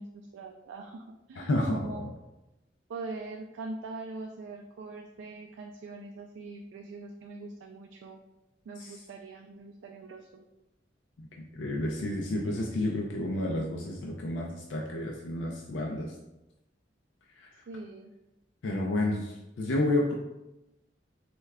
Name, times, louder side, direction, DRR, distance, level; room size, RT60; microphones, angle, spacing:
voice 1, 0.0-2.1 2.9-8.2 8.7-10.4 17.7-18.1, right 3 dB, 80° right, 3 dB, 0.3 m, -42 dB
voice 2, 1.4-2.1 8.8-8.9 11.2-16.1 17.4-17.5 18.6-20.1, left 1 dB, 80° left, 0 dB, 0.4 m, -31 dB
3.2 x 2.2 x 3.4 m, 0.94 s
head